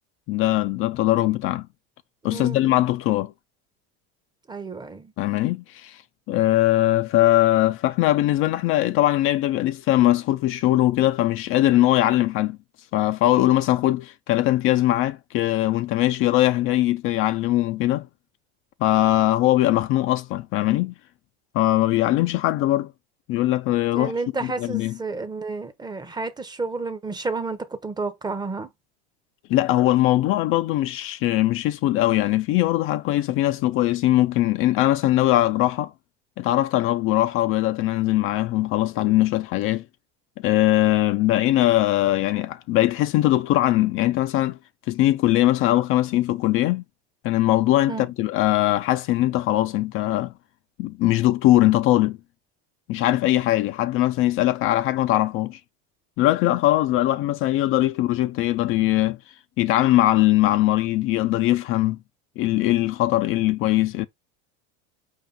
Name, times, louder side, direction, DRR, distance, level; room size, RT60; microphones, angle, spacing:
voice 1, 0.3-1.7 2.2-3.3 5.2-6.0 6.3-12.6 12.9-18.1 18.8-20.9 21.5-22.9 23.3-24.1 24.4-25.0 29.5-35.9 36.4-39.8 40.4-44.6 44.9-46.8 47.2-50.3 50.8-52.2 52.9-55.6 56.2-59.2 59.6-62.0 62.4-64.1, left 15 dB, 45° left, 0.4 m, -21 dB
voice 2, 2.3-2.8 4.5-5.1 23.9-28.7 47.9-48.1, right 3 dB, 15° right, 0.7 m, -31 dB
4.9 x 2.7 x 3.7 m
supercardioid pair, 120°, 30 cm